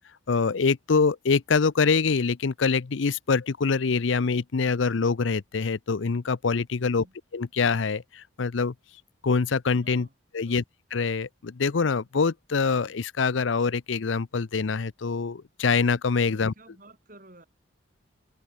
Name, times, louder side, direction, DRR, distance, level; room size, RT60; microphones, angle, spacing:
voice 1, 0.3-7.0 7.3-8.7 9.2-10.1 10.3-10.6 10.9-16.5, left 5 dB, 75° left, 0.6 m, -25 dB
voice 2, 6.8-7.2 9.8-10.6 16.2-17.5, right 2 dB, 45° right, 4.3 m, -53 dB
head